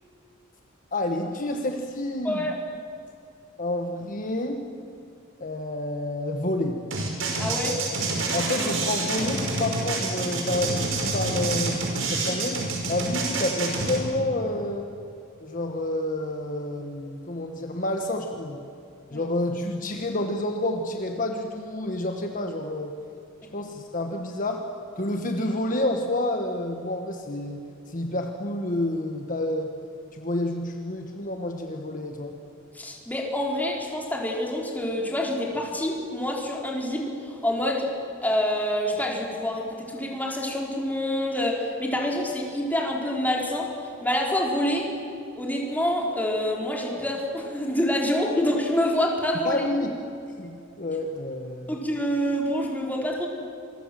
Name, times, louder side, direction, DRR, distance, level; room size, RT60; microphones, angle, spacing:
voice 1, 0.9-2.4 3.6-4.6 5.4-6.8 8.3-14.8 15.4-18.6 19.1-22.9 23.5-24.7 24.9-29.7 30.1-32.4 49.4-49.9 50.4-51.8, left 1 dB, 40° left, 4 dB, 1.5 m, -29 dB
sound 1, 6.9-14.0, right 3 dB, 70° right, 5.1 m, -27 dB
voice 2, 7.4-7.8 19.1-19.2 32.7-37.9 38.2-43.7 44.0-44.9 45.3-49.6 51.7-53.3, left 1 dB, 10° left, -1 dB, 4.1 m, -27 dB
27.0 x 23.0 x 7.7 m, 2.6 s
head